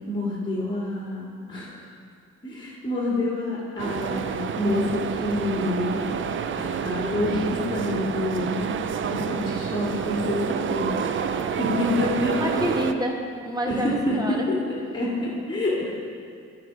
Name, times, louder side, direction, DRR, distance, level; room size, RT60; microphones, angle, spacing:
voice 1, 0.1-1.7 2.4-6.3 6.5-11.0 11.4-12.5 13.7-15.9, left 1 dB, 15° left, -8 dB, 2.4 m, -27 dB
sound 1, 3.8-12.9, right 7 dB, 40° right, 0.5 m, -28 dB
voice 2, 12.3-14.4, right 1 dB, 15° right, 0 dB, 1.3 m, -28 dB
13.5 x 4.7 x 4.7 m, 2.4 s
cardioid pair, 90°, 30 cm